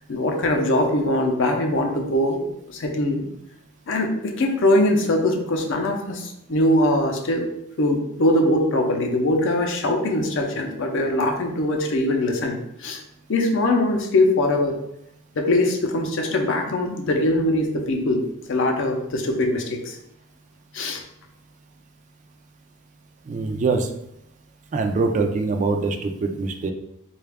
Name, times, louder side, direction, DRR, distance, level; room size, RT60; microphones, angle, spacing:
voice 1, 0.1-3.3 3.9-7.5 7.8-13.0 13.3-14.8 15.3-20.0 20.7-21.0, left 1 dB, 60° left, 3 dB, 0.5 m, -22 dB
voice 2, 23.3-23.9 24.7-26.7, right 3 dB, 35° right, 5 dB, 0.3 m, -23 dB
3.9 x 2.3 x 3.4 m, 0.80 s
head